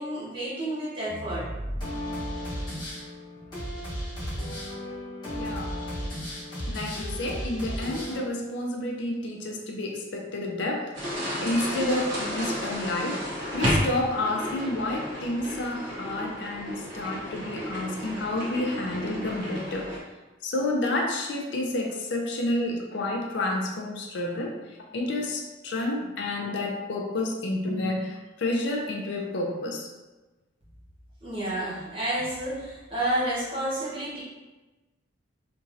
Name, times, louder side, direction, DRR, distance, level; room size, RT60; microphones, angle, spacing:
voice 1, 0.0-1.5 31.2-34.2, right 1 dB, 25° right, -9 dB, 1.0 m, -30 dB
sound 1, 1.1-8.2, equal, 20° left, 0.9 m, -34 dB
voice 2, 5.3-5.8 6.7-13.2 13.5-19.9 20.4-29.9, left 2 dB, 60° left, 1 dB, 0.4 m, -30 dB
sound 2, 10.9-20.0, equal, 70° right, 0.8 m, -32 dB
2.9 x 2.6 x 2.5 m, 1.1 s
head